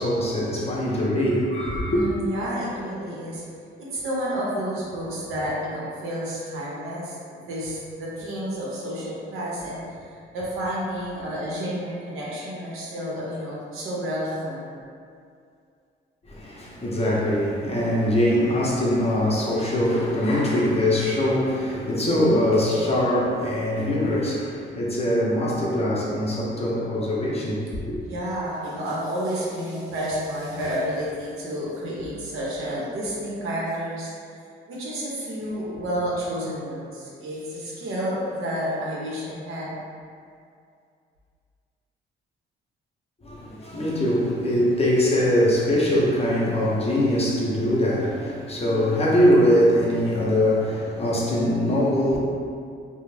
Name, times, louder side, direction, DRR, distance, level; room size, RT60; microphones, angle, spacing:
voice 1, 0.0-2.0 16.3-28.0 43.2-52.2, left 1 dB, 30° left, -5 dB, 0.7 m, -22 dB
voice 2, 1.8-3.4 3.8-7.2 7.5-14.7 28.0-34.1 34.7-39.8, equal, 80° right, -6 dB, 0.7 m, -30 dB
2.4 x 2.0 x 3.2 m, 2.3 s
cardioid pair, 70°, 21 cm